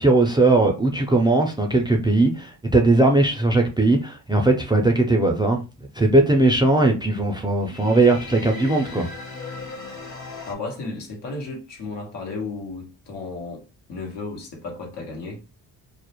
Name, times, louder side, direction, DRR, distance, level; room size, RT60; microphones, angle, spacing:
voice 1, 0.0-5.6 5.9-9.1, right 2 dB, 10° right, 0.4 m, -19 dB
sound 1, 7.6-10.5, left 3 dB, 40° left, 0.9 m, -37 dB
voice 2, 10.5-13.6 13.9-15.4, left 3 dB, 75° left, 1.1 m, -33 dB
2.3 x 2.1 x 2.9 m
cardioid pair, 80°, 43 cm